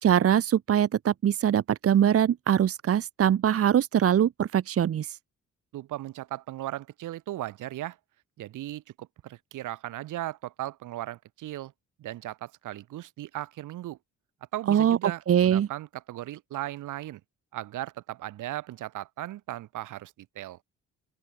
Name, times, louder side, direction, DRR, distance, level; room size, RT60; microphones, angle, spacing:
voice 1, 0.0-5.2 14.7-15.7, right 9 dB, 50° right, 1.0 m, -23 dB
voice 2, 5.7-8.0 8.4-11.7 12.0-14.0 14.5-17.2 17.5-20.6, right 14 dB, 85° right, 5.1 m, -37 dB
open air
cardioid pair, 90°, 30 cm